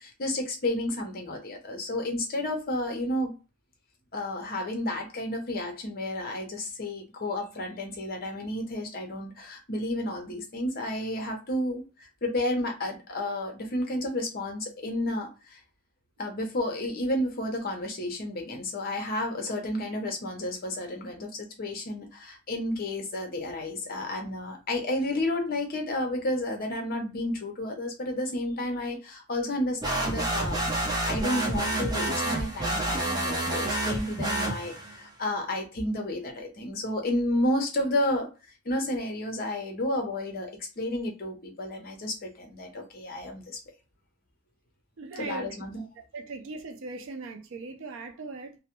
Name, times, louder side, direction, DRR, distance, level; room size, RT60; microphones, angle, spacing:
voice 1, 0.0-3.3 4.1-15.6 16.2-30.6 31.1-38.3 38.6-43.6 45.2-45.8, left 1 dB, 40° left, 0.7 m, -31 dB
sound 1, 29.8-35.0, right 1 dB, 15° right, 0.6 m, -29 dB
voice 2, 45.0-45.5 45.8-45.9 46.1-48.6, right 3 dB, 60° right, 0.4 m, -39 dB
2.2 x 2.1 x 3.0 m
head